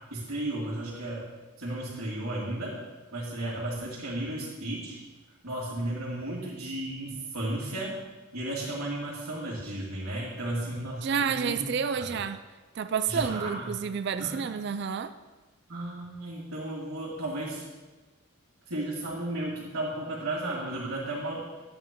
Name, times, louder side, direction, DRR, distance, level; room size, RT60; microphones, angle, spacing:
voice 1, 0.1-1.3 1.6-2.7 3.1-5.0 5.4-8.0 8.3-11.7 12.0-12.2 13.1-13.8 14.2-14.4 15.7-17.7 18.7-21.4, right 1 dB, 80° right, -11 dB, 2.3 m, -34 dB
voice 2, 11.0-12.4 12.7-15.2, right 6 dB, 50° right, 11 dB, 0.3 m, -30 dB
11.5 x 8.5 x 3.0 m, 1.3 s
head